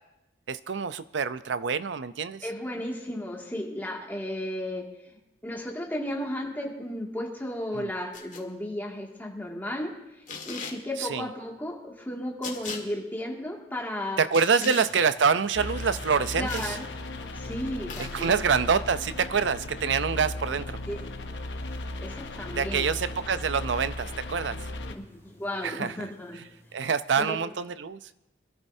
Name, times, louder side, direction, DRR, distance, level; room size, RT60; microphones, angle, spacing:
voice 1, 0.5-2.5 7.8-7.9 11.0-11.3 14.2-16.8 18.1-20.8 22.5-24.6 25.6-25.9 26.7-28.0, right 6 dB, 75° right, 13 dB, 0.6 m, -26 dB
voice 2, 2.4-14.2 14.6-14.8 16.4-16.9 17.3-18.5 20.5-20.6 20.9-21.0 22.0-22.9 24.9-26.4 27.2-27.4, left 1 dB, 10° left, -1 dB, 2.2 m, -34 dB
sound 1, 8.1-8.4 10.3-10.8 12.4-12.8 14.3-14.9 16.5-16.8 17.9-18.3, left 5 dB, 45° left, 1.8 m, -38 dB
sound 2, 14.8-26.8, equal, 15° right, 5.6 m, -56 dB
sound 3, 15.5-24.9, left 2 dB, 75° left, 1.0 m, -36 dB
25.5 x 13.5 x 2.7 m, 0.93 s
head